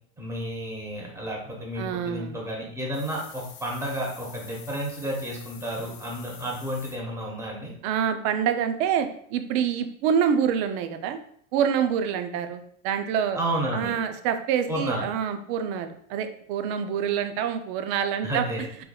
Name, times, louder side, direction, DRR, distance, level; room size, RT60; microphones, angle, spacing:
voice 1, 0.2-7.7 13.3-14.0 14.7-15.1 18.2-18.6, right 1 dB, 10° right, -2 dB, 1.1 m, -31 dB
voice 2, 1.8-2.4 7.8-11.2 11.5-13.4 13.7-18.4, right 8 dB, 60° right, 8 dB, 0.6 m, -26 dB
sound 1, 2.9-7.0, left 7 dB, 50° left, 0.7 m, -47 dB
4.6 x 3.1 x 2.3 m, 0.64 s
supercardioid pair, 125°, 35 cm